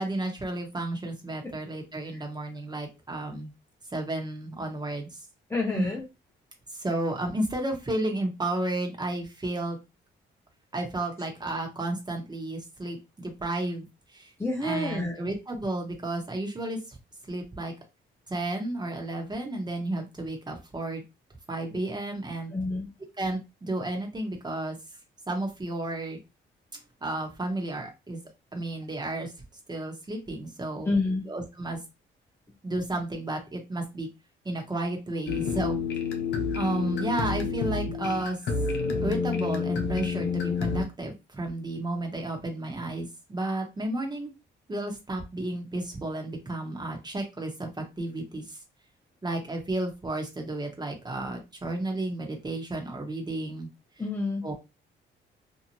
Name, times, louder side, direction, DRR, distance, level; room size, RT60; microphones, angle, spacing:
voice 1, 0.0-3.5 3.9-5.2 5.7-5.9 6.7-9.8 10.7-13.8 14.1-14.3 14.6-17.0 17.2-17.7 18.3-21.0 21.5-22.5 23.2-24.8 25.3-26.2 27.0-28.2 28.5-29.3 29.7-30.9 31.3-31.8 32.6-34.1 34.4-35.8 36.5-38.4 39.0-44.3 44.7-48.6 49.2-53.7 54.4-54.5, right 2 dB, 20° right, 2 dB, 1.1 m, -32 dB
voice 2, 5.5-6.0 14.4-15.3 22.5-22.9 30.9-31.2 54.0-54.5, left 2 dB, 10° left, 1 dB, 0.6 m, -29 dB
sound 1, 35.3-40.8, left 5 dB, 60° left, 0.7 m, -29 dB
2.7 x 2.4 x 3.0 m, 0.25 s
cardioid pair, 90°, 20 cm